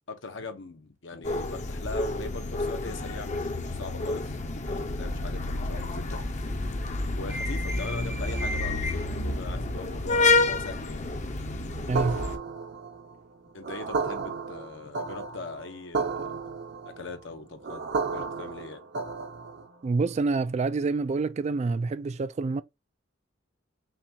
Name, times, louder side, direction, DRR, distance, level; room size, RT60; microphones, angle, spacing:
voice 1, 0.1-4.4 4.7-6.2 7.1-11.1 13.5-16.3 16.8-18.9, left 3 dB, 70° left, 0.9 m, -41 dB
sound 1, 1.2-12.4, left 2 dB, 40° left, 0.7 m, -29 dB
voice 2, 11.9-12.2 19.8-22.6, right 3 dB, 35° right, 0.3 m, -27 dB
sound 2, 11.9-19.7, right 4 dB, 60° right, 0.8 m, -33 dB
5.8 x 2.4 x 2.8 m
head